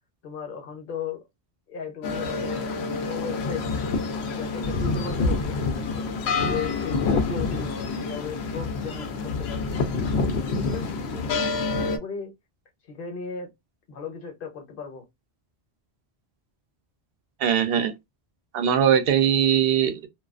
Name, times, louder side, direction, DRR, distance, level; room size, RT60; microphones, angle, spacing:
voice 1, 0.2-1.2 1.7-3.6 4.3-6.1 6.5-9.8 10.5-11.3 11.7-12.3 12.9-13.5 13.9-15.0, left 6 dB, 60° left, 1.0 m, -36 dB
sound 1, 2.0-12.0, left 4 dB, 80° left, 0.8 m, -27 dB
voice 2, 17.4-17.9 18.5-20.1, right 9 dB, 65° right, 0.7 m, -21 dB
2.3 x 2.3 x 2.3 m
omnidirectional pair, 1.1 m